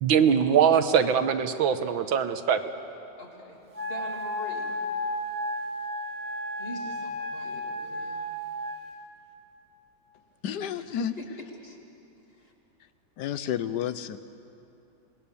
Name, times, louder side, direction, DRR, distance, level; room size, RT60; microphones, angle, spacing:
voice 1, 0.0-2.6, right 7 dB, 80° right, 9 dB, 1.8 m, -22 dB
voice 2, 3.2-4.8 6.6-8.2 11.2-11.3 11.6-11.8 12.3-12.5, left 1 dB, 30° left, 0 dB, 2.8 m, -43 dB
Wind instrument woodwind instrument, 3.7-9.0, equal, 35° right, 2.3 m, -33 dB
voice 3, 10.4-11.1 13.2-14.2, left 10 dB, 65° left, 13 dB, 1.3 m, -30 dB
27.0 x 20.0 x 7.1 m, 2.7 s
omnidirectional pair, 2.1 m